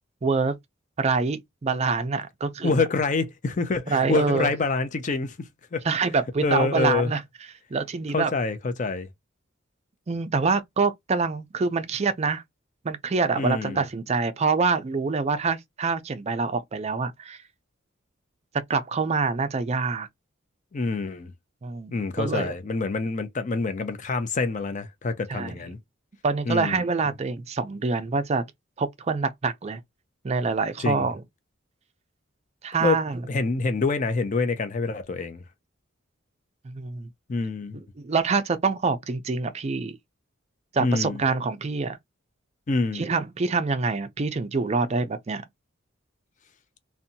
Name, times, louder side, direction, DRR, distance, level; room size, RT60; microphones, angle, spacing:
voice 1, 0.2-0.5 1.0-2.8 3.9-4.5 5.9-7.2 7.7-8.3 10.1-12.4 12.8-17.4 18.7-20.1 21.6-22.5 25.3-25.6 26.2-28.4 28.8-29.8 30.2-31.2 32.6-33.2 36.6-37.1 38.0-40.0 40.7-42.0 42.9-45.4, right 4 dB, 35° right, 0.4 m, -26 dB
voice 2, 2.6-5.8 6.4-7.1 8.1-9.1 13.4-13.8 20.7-21.3 21.9-25.8 26.5-26.8 30.8-31.1 32.8-33.0 33.3-35.4 37.3-37.8 40.8-41.2 42.7-43.1, left 3 dB, 40° left, 0.5 m, -26 dB
2.7 x 2.2 x 2.6 m
head